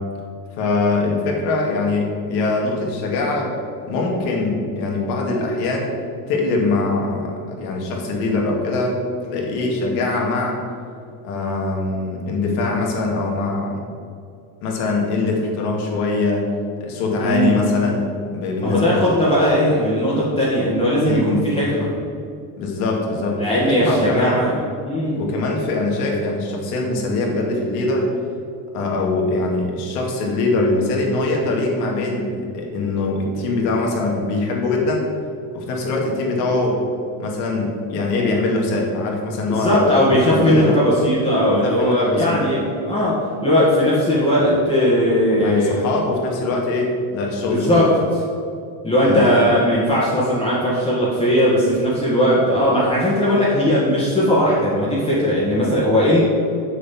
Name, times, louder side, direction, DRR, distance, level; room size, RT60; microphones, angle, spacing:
voice 1, 0.6-3.5 3.9-5.9 6.3-9.0 9.3-10.6 11.2-13.8 14.6-16.5 16.8-18.0 18.3-19.0 20.1-20.2 21.0-21.4 22.6-24.4 25.2-28.1 28.7-35.0 35.5-36.8 37.2-40.7 41.4-42.4 45.4-47.8 49.0-49.3, left 3 dB, 85° left, -1 dB, 2.6 m, -22 dB
voice 2, 17.2-17.6 18.6-21.9 23.4-25.3 39.5-45.7 47.5-47.9 48.8-56.2, equal, 10° left, -9 dB, 1.9 m, -18 dB
7.2 x 6.9 x 7.3 m, 2.4 s
cardioid pair, 150°, 44 cm